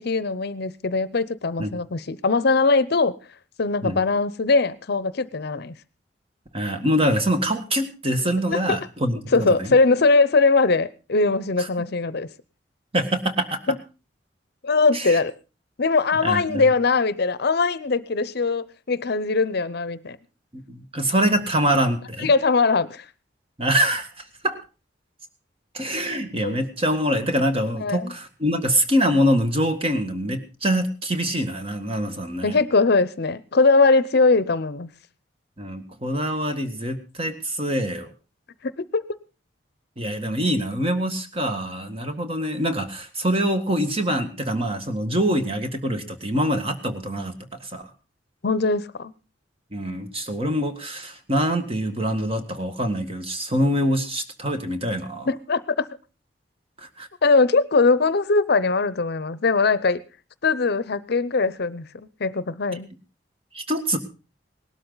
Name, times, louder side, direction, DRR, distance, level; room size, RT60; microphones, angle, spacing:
voice 1, 0.0-3.2 3.6-5.7 8.5-8.6 9.3-12.3 13.7-13.8 14.6-15.3 15.8-20.2 22.2-23.0 26.4-26.5 27.8-28.1 32.4-34.9 38.6-39.2 48.4-49.1 55.3-55.9 57.2-60.0 60.4-61.8 62.2-62.9, left 3 dB, 60° left, 0.7 m, -21 dB
voice 2, 6.5-9.7 11.6-11.7 12.9-13.6 14.9-15.2 16.2-16.7 20.5-22.3 23.6-24.1 24.4-24.6 25.7-32.6 35.6-38.1 40.0-47.3 47.6-47.9 49.7-55.3 56.8-57.1 62.7-62.8 63.5-64.0, equal, 30° right, 1.8 m, -24 dB
18.5 x 12.5 x 4.0 m
head